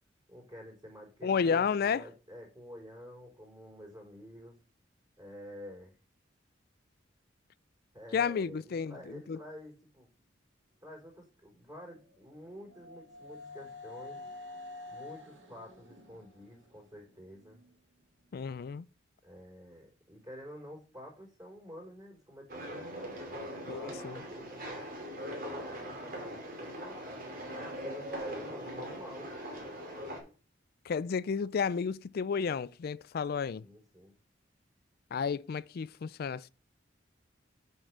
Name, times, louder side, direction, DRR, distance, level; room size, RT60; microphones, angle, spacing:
voice 1, 0.3-4.6 5.2-6.0 7.9-10.1 10.8-14.2 14.9-17.6 19.2-24.9 25.2-27.0 27.6-29.3 33.6-34.1, equal, 20° right, 4.2 m, -49 dB
voice 2, 1.2-2.0 8.1-9.4 18.3-18.8 23.7-24.2 30.9-33.6 35.1-36.5, left 6 dB, 55° left, 0.4 m, -32 dB
sound 1, 12.0-17.7, left 3 dB, 80° right, 2.1 m, -49 dB
sound 2, 22.5-30.2, equal, 50° right, 2.7 m, -41 dB
7.8 x 4.5 x 6.1 m
head